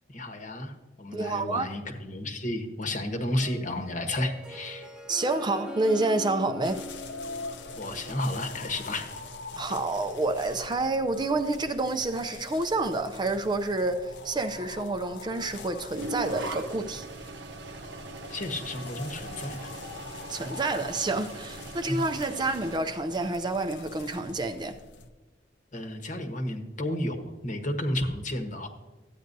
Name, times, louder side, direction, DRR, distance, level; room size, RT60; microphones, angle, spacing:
voice 1, 0.1-0.7 1.0-4.9 7.8-9.1 18.3-19.7 21.9-22.0 25.7-28.7, left 1 dB, 45° left, 1.1 m, -32 dB
voice 2, 1.1-1.8 5.1-6.8 9.6-17.1 20.3-24.8, right 2 dB, 25° right, 0.4 m, -28 dB
Harp, 3.2-8.8, equal, 5° right, 0.8 m, -42 dB
sound 1, 6.6-25.1, left 3 dB, 70° left, 0.7 m, -44 dB
sound 2, 15.9-22.8, right 2 dB, 70° right, 0.8 m, -40 dB
13.5 x 9.0 x 2.7 m
head